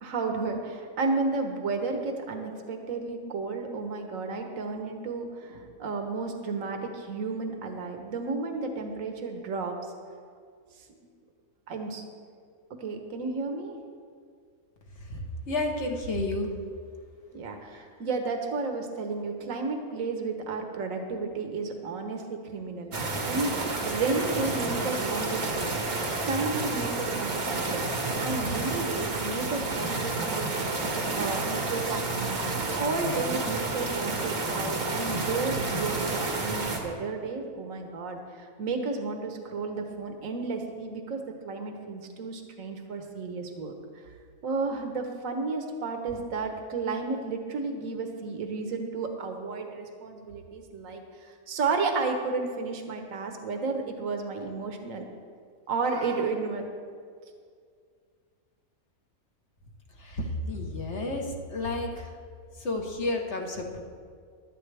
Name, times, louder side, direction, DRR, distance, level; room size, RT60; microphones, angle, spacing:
voice 1, 0.0-9.7 11.7-12.0 12.8-13.8 17.3-25.7 26.2-27.9 28.2-30.5 31.1-43.7 44.4-55.0 55.7-56.7, right 4 dB, 65° right, 4 dB, 1.5 m, -32 dB
voice 2, 15.0-16.5 17.7-17.9 24.8-24.9 25.4-25.5 60.0-62.1 62.6-63.8, left 2 dB, 50° left, 2 dB, 1.5 m, -31 dB
sound 1, 22.9-36.8, right 3 dB, 80° right, 2.0 m, -30 dB
16.5 x 12.0 x 3.4 m, 2.1 s
omnidirectional pair, 1.5 m